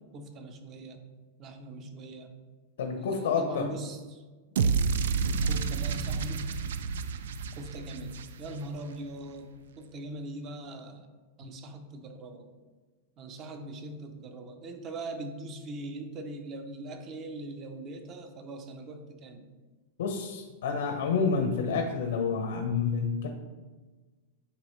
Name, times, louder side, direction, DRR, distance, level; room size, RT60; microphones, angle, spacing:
voice 1, 0.1-1.0 1.4-2.3 3.0-4.3 5.2-6.5 7.6-11.1 11.4-12.5 13.2-19.5, right 2 dB, 25° right, 6 dB, 0.6 m, -41 dB
voice 2, 2.8-3.7 20.0-23.3, left 5 dB, 80° left, 4 dB, 0.9 m, -29 dB
sound 1, 4.6-8.8, right 5 dB, 80° right, 0.4 m, -29 dB
10.0 x 3.9 x 3.2 m, 1.3 s
supercardioid pair, 175°, 0 cm